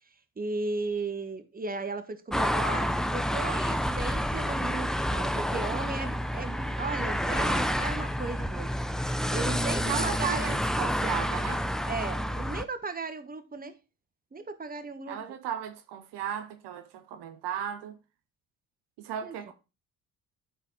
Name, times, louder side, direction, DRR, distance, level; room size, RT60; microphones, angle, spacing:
voice 1, 0.4-8.7 9.0-10.6 11.9-13.8 14.3-15.2 19.2-19.5, right 3 dB, 20° right, 1.3 m, -36 dB
sound 1, 2.3-12.6, equal, ahead, 0.6 m, -29 dB
voice 2, 9.8-11.7 15.1-18.0 19.0-19.5, right 9 dB, 65° right, 1.0 m, -35 dB
12.0 x 4.0 x 4.1 m
hypercardioid pair, 55°, 43 cm